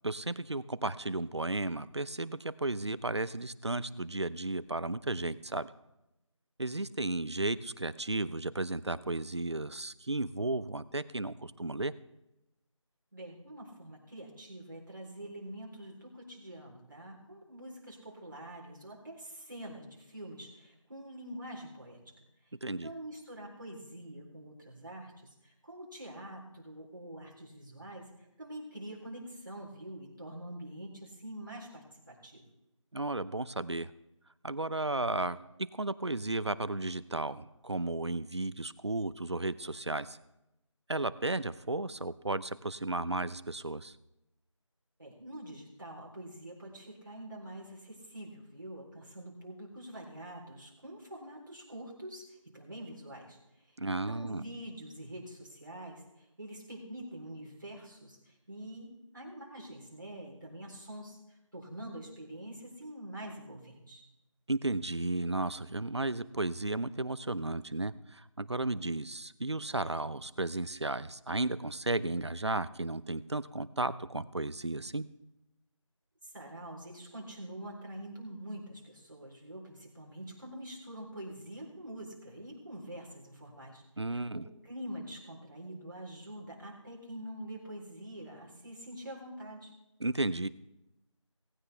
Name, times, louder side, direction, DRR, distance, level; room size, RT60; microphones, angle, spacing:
voice 1, 0.0-5.7 6.6-11.9 22.6-22.9 32.9-33.9 34.4-35.4 35.7-40.2 40.9-43.9 53.8-54.4 64.5-75.0 84.0-84.4 90.0-90.5, right 2 dB, 55° right, 16 dB, 0.7 m, -34 dB
voice 2, 13.1-22.1 22.4-32.5 45.0-53.4 53.7-64.0 76.2-89.7, right 1 dB, 40° right, -4 dB, 3.7 m, -45 dB
17.0 x 15.5 x 3.4 m, 0.90 s
figure-of-eight pair, 180°, 17 cm